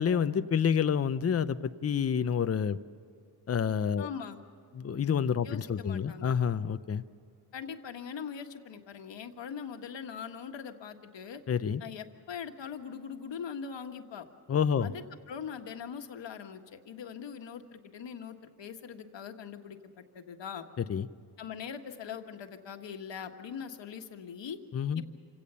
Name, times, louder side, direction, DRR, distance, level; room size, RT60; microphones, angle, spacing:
voice 1, 0.0-2.8 3.5-4.1 4.8-7.0 11.5-11.8 14.5-14.9 20.9-21.1 24.7-25.0, left 7 dB, 35° left, 11 dB, 0.6 m, -28 dB
voice 2, 4.0-4.4 5.4-6.3 7.5-11.4 11.8-14.3 14.8-20.7 21.4-24.6 25.0-25.1, left 7 dB, 75° left, 6 dB, 1.6 m, -42 dB
27.0 x 17.0 x 6.9 m, 2.3 s
wide cardioid pair, 120°, 44 cm